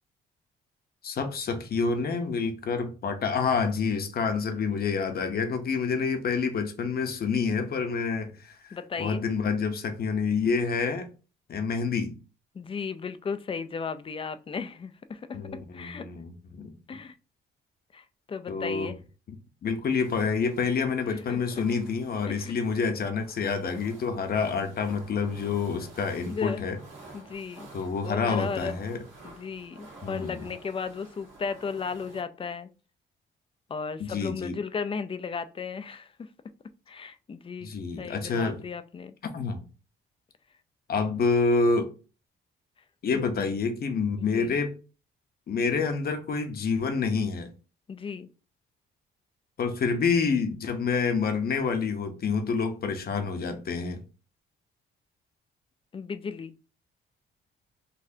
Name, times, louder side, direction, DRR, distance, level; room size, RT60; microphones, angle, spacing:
voice 1, 1.0-11.1 11.5-12.1 15.3-16.7 18.5-18.9 19.6-26.8 27.7-29.0 30.0-30.5 34.0-34.6 37.6-38.6 39.3-39.6 40.9-41.9 43.0-44.7 45.5-47.5 49.6-54.0, left 5 dB, 50° left, 0.8 m, -28 dB
voice 2, 8.7-9.2 12.5-15.4 15.7-16.0 16.9-17.1 17.9-19.0 21.3-21.6 22.3-22.5 26.3-26.7 27.1-27.7 28.0-28.7 29.2-32.7 33.7-36.3 36.9-37.7 38.0-39.1 43.4-43.5 44.2-44.6 47.9-48.3 55.9-56.5, left 5 dB, 25° left, 0.4 m, -35 dB
sound 1, 20.0-32.2, right 2 dB, 85° right, 1.5 m, -51 dB
4.0 x 2.7 x 2.7 m
cardioid pair, 90°, 20 cm